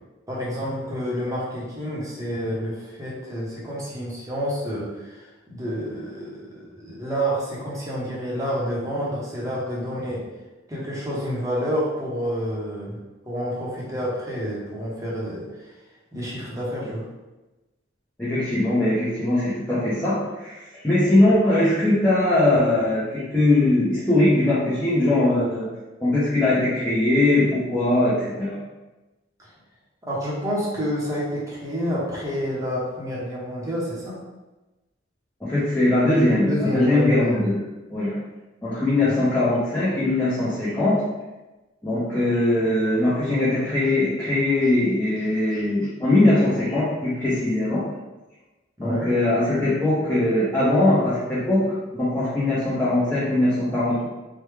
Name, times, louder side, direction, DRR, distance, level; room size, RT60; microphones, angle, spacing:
voice 1, 0.3-5.2 5.5-10.2 10.7-13.0 13.3-15.7 16.1-17.0 30.0-34.2 36.5-37.5 48.8-49.1, equal, 15° right, -6 dB, 0.8 m, -29 dB
voice 2, 18.2-25.7 26.0-28.6 35.4-37.6 37.9-38.2 38.6-41.0 41.8-47.8 48.8-54.1, left 1 dB, 10° left, -11 dB, 0.7 m, -21 dB
3.3 x 2.2 x 3.2 m, 1.1 s
head